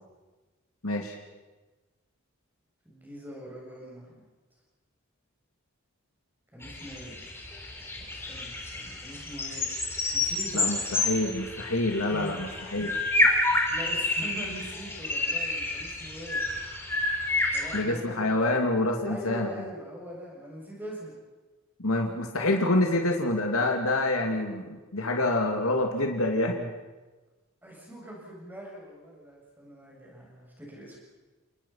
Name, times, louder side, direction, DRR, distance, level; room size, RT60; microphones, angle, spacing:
voice 1, 0.8-1.2 10.5-12.9 17.7-19.5 21.8-26.7, left 2 dB, 85° left, 2 dB, 2.7 m, -27 dB
voice 2, 2.8-4.3 6.5-7.2 8.0-9.7 10.1-10.7 12.1-12.4 12.7-12.9 13.7-16.7 17.5-18.4 19.0-21.2 27.6-31.0, right 1 dB, 10° right, -3 dB, 7.4 m, -42 dB
sound 1, 6.6-17.8, left 2 dB, 10° left, 3.4 m, -29 dB
29.5 x 20.0 x 5.8 m, 1.2 s
head